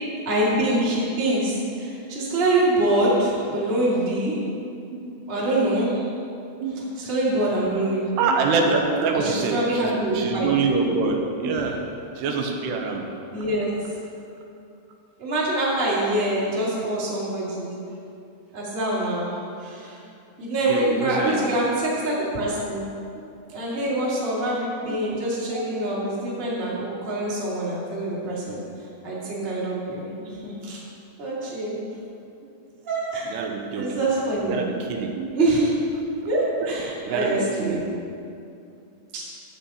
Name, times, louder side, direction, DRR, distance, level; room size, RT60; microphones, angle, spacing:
voice 1, 0.2-4.4 5.3-6.1 7.0-8.1 9.1-10.5 11.4-11.7 13.3-13.7 15.2-17.7 18.5-20.0 20.4-22.8 23.5-28.6 29.0-30.8 31.2-31.7 32.8-33.4 33.7-34.6 35.3-35.9 36.2-37.8 39.1-39.2, right 1 dB, 20° right, -7 dB, 1.6 m, -25 dB
voice 2, 8.2-11.8 12.2-13.1 20.7-21.4 21.6-21.8 23.5-23.6 25.0-25.2 25.5-25.6 33.3-34.0 34.4-35.3 36.6-36.7 37.0-37.8, right 4 dB, 90° right, 2 dB, 3.0 m, -25 dB
12.5 x 8.1 x 4.2 m, 2.6 s
omnidirectional pair, 4.8 m